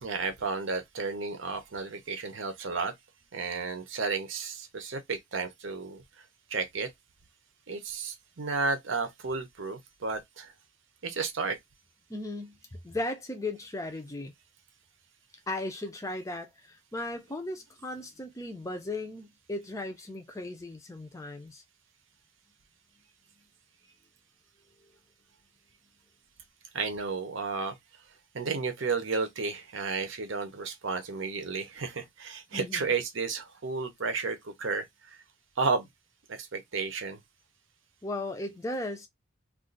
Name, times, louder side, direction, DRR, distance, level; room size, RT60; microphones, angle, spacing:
voice 1, 0.0-2.9 3.3-6.9 7.7-10.5 11.0-11.6 26.7-27.8 28.3-35.2 35.6-35.9 36.3-37.2, right 4 dB, 60° right, 0.7 m, -32 dB
voice 2, 12.1-14.3 15.5-21.6 32.5-32.9 38.0-39.1, left 2 dB, 15° left, 0.5 m, -36 dB
2.5 x 2.5 x 3.8 m
head